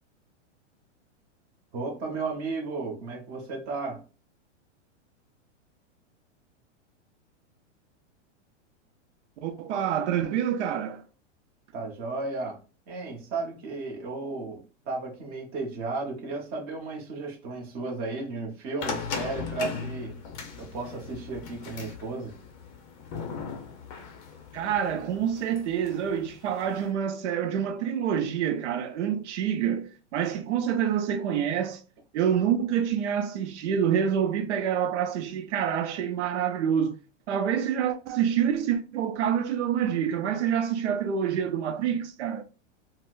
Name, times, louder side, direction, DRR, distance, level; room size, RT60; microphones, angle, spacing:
voice 1, 1.7-4.0 11.7-12.6 12.9-20.2 20.6-22.3, right 3 dB, 25° right, 0.9 m, -34 dB
voice 2, 9.4-11.0 24.5-31.8 32.1-36.9 37.3-42.4, right 8 dB, 70° right, 0.6 m, -27 dB
sound 1, 18.8-26.9, left 5 dB, 30° left, 0.6 m, -38 dB
4.1 x 2.1 x 2.4 m
supercardioid pair, 155°, 36 cm